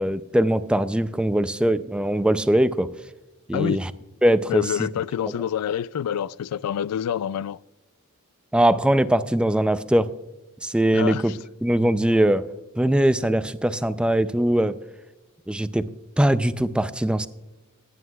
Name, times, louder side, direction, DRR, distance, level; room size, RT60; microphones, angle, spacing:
voice 1, 0.0-2.9 3.5-3.8 4.2-4.6 8.5-10.1 10.6-11.3 11.6-12.4 12.8-14.7 15.5-15.9 16.2-17.3, right 1 dB, 5° right, 0.3 m, -21 dB
voice 2, 3.5-3.8 4.5-7.6 10.9-11.4, left 9 dB, 90° left, 0.3 m, -27 dB
17.0 x 9.2 x 2.3 m
head